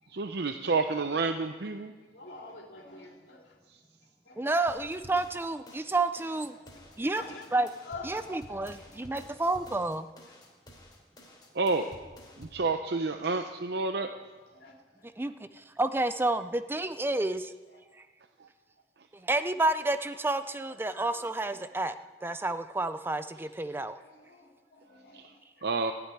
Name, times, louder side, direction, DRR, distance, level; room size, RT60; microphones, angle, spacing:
voice 1, 0.1-1.9 11.6-11.9 12.4-14.1 18.4-18.5 25.1-25.3 25.6-25.9, right 3 dB, 65° right, 7 dB, 0.7 m, -29 dB
voice 2, 2.1-3.6 4.2-5.4 6.5-7.6 7.8-9.5 10.3-10.4 13.6-13.8 14.5-15.4 17.7-17.9 20.7-21.6 21.9-22.0 23.8-25.7, left 3 dB, 70° left, 0 dB, 3.0 m, -50 dB
voice 3, 4.4-6.6 7.0-7.2 7.5-7.7 8.0-10.1 15.2-17.5 19.2-21.9 22.2-24.0, right 2 dB, 10° right, 11 dB, 0.4 m, -30 dB
sound 1, 4.7-12.7, equal, 25° left, 3.1 m, -52 dB
16.0 x 8.0 x 9.9 m, 1.3 s
head